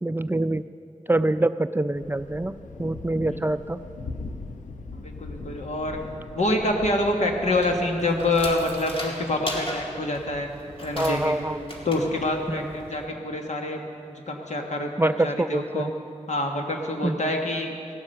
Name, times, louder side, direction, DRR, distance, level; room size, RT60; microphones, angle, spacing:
voice 1, 0.0-0.6 1.1-3.8 11.0-11.6 12.5-12.8 15.0-15.9 17.0-17.2, right 1 dB, 15° right, 12 dB, 0.4 m, -25 dB
Thunder, 1.9-8.0, left 3 dB, 85° left, 0.8 m, -40 dB
voice 2, 5.0-6.0 6.3-10.5 10.8-11.4 11.8-13.8 14.1-15.9 16.3-17.8, left 1 dB, 65° left, 2 dB, 1.5 m, -26 dB
sound 1, 7.4-13.1, equal, 45° left, 2.0 m, -37 dB
16.0 x 7.3 x 6.6 m, 2.5 s
cardioid pair, 45°, 13 cm